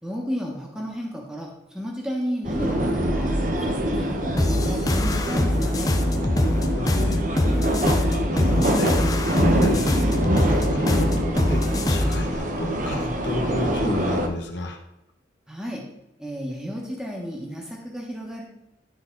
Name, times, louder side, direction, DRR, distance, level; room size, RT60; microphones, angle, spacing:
voice 1, 0.0-5.9 15.5-15.8 16.2-18.4, equal, 5° right, -2 dB, 1.3 m, -33 dB
sound 1, 2.4-14.3, right 1 dB, 45° right, 0.8 m, -25 dB
sound 2, 4.4-12.3, left 1 dB, 20° left, 0.5 m, -23 dB
voice 2, 6.7-14.8, left 1 dB, 75° left, 2 dB, 1.4 m, -30 dB
12.0 x 4.1 x 3.8 m, 0.84 s
head